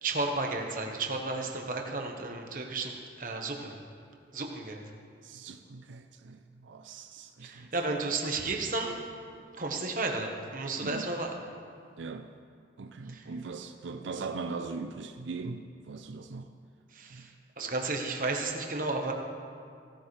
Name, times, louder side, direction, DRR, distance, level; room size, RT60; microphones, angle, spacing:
voice 1, 0.0-3.8 4.3-4.8 7.4-9.0 9.6-11.4 13.1-13.2 16.9-19.1, right 3 dB, 45° right, 2 dB, 1.2 m, -33 dB
voice 2, 5.2-7.7 10.8-11.1 12.0-12.3 12.8-16.5 17.1-17.3, right 4 dB, 90° right, 6 dB, 0.5 m, -40 dB
16.5 x 12.5 x 3.3 m, 2.3 s
head